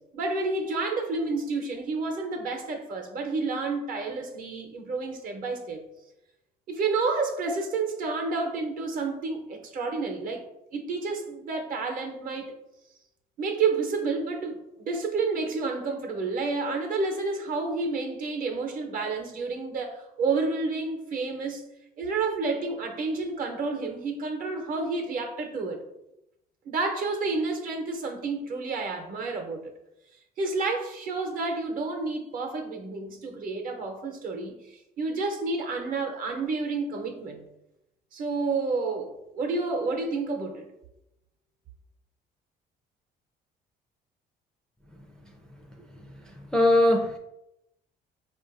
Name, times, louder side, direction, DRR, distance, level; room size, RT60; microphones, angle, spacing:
voice 1, 0.1-5.8 6.7-10.4 10.7-12.5 13.4-21.7 22.0-25.8 26.7-29.7 30.4-37.4 38.1-40.7, right 3 dB, 55° right, 4 dB, 0.8 m, -30 dB
voice 2, 46.0-47.2, left 1 dB, 5° left, 1 dB, 0.4 m, -22 dB
4.6 x 2.5 x 2.5 m, 0.85 s
cardioid pair, 110°, 17 cm